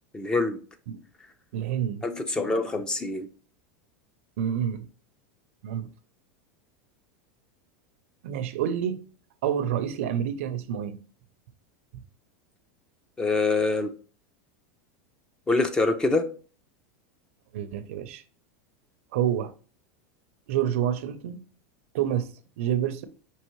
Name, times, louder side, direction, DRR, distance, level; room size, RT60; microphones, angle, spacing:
voice 1, 0.1-0.6 2.0-3.3 13.2-13.9 15.5-16.2, left 3 dB, 10° left, 0.4 m, -25 dB
voice 2, 1.5-2.0 4.4-4.9 5.6-5.9 8.2-9.0 9.4-11.0 17.5-18.2 19.1-19.5 20.5-21.4 21.9-22.3 22.6-23.1, right 9 dB, 70° right, 0.5 m, -28 dB
5.5 x 2.9 x 3.0 m
supercardioid pair, 155°, 7 cm